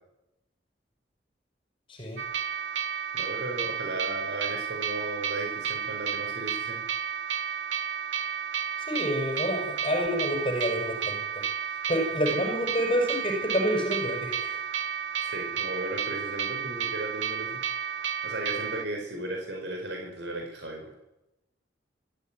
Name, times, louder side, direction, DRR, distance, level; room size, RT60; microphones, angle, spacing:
sound 1, 2.2-18.9, right 8 dB, 90° right, 1.3 m, -32 dB
voice 1, 3.1-6.8 15.2-17.6 18.2-20.9, right 1 dB, 70° right, 2 dB, 5.1 m, -35 dB
voice 2, 8.9-11.5 11.9-14.6, equal, 30° left, 1 dB, 5.6 m, -28 dB
24.5 x 14.5 x 9.3 m, 0.92 s
head